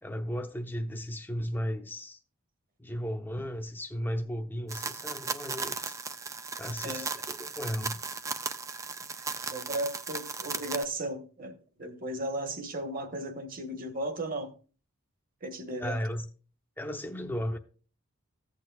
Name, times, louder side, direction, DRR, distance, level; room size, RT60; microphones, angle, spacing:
voice 1, 0.0-2.2 2.8-6.0 6.6-8.0 15.8-16.3 16.8-17.6, equal, 10° left, 0.7 m, -35 dB
sound 1, 4.7-10.8, right 4 dB, 15° right, 0.4 m, -36 dB
voice 2, 9.2-14.5 15.4-16.0, right 1 dB, 40° right, 1.3 m, -36 dB
15.0 x 8.5 x 2.3 m
head